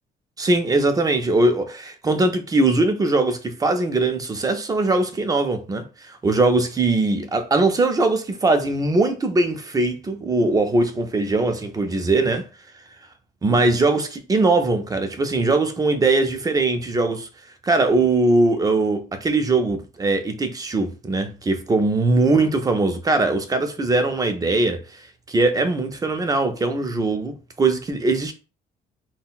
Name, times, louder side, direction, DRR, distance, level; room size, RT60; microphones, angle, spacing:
voice 1, 0.4-12.5 13.4-17.3 17.6-28.3, right 2 dB, 20° right, 0.5 m, -21 dB
3.6 x 2.1 x 2.4 m
cardioid pair, 110°, 17 cm